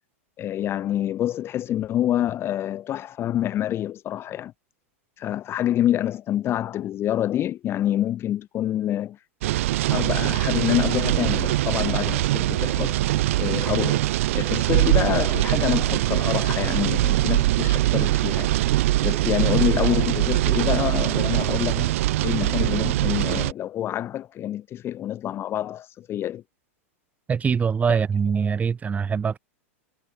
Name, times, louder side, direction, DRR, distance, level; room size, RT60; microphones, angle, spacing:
voice 1, 0.4-4.5 5.2-9.2 9.9-13.0 13.4-14.1 14.3-18.5 19.0-21.9 22.2-26.4, left 12 dB, 30° left, 1.0 m, -27 dB
sound 1, 9.4-23.5, right 16 dB, 65° right, 1.3 m, -22 dB
voice 2, 27.3-29.4, right 6 dB, 20° right, 1.6 m, -23 dB
hypercardioid pair, 115°, 8 cm